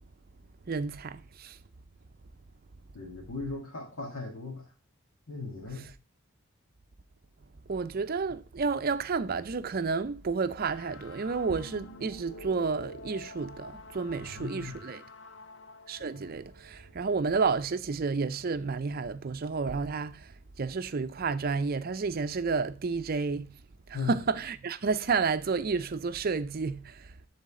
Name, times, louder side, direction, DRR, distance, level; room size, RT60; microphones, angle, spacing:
voice 1, 0.7-1.6 7.7-15.0 15.9-23.5 23.9-27.1, right 4 dB, 45° right, 0.5 m, -31 dB
voice 2, 2.9-4.7 5.3-5.9 14.2-14.8 23.9-24.2, left 4 dB, 80° left, 1.9 m, -38 dB
sound 1, 10.7-17.5, left 2 dB, 60° left, 0.8 m, -48 dB
11.0 x 4.0 x 3.6 m
head